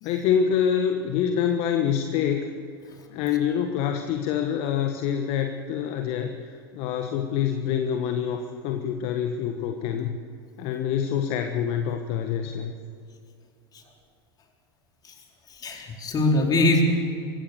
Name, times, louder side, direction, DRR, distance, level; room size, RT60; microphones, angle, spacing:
voice 1, 0.0-2.5 3.1-10.2 10.6-12.7, left 8 dB, 50° left, 6 dB, 1.4 m, -26 dB
voice 2, 15.5-16.8, left 2 dB, 30° left, 1 dB, 4.5 m, -22 dB
24.0 x 16.0 x 6.8 m, 2.5 s
hypercardioid pair, 85°, 13 cm